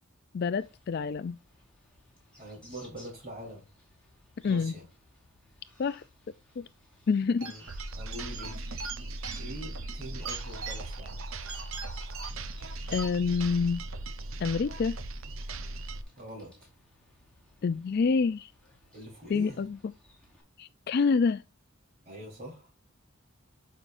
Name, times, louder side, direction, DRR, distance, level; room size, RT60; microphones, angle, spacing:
voice 1, 0.3-1.4 4.4-4.7 5.8-6.0 6.6-6.7 7.1-7.5 12.9-13.8 14.4-15.0 17.6-18.5 19.3-19.9 20.6-21.4, left 5 dB, 50° left, 0.3 m, -27 dB
sound 1, 0.6-20.4, left 2 dB, 5° left, 4.5 m, -61 dB
voice 2, 2.4-3.7 4.4-4.9 7.4-7.6 7.9-8.8 9.4-11.2 16.2-16.6 18.9-19.6 22.1-22.7, equal, 35° right, 3.9 m, -44 dB
sound 2, 7.4-13.4, right 5 dB, 90° right, 2.1 m, -43 dB
sound 3, 7.7-16.0, right 2 dB, 75° right, 0.8 m, -39 dB
12.0 x 5.5 x 2.6 m
head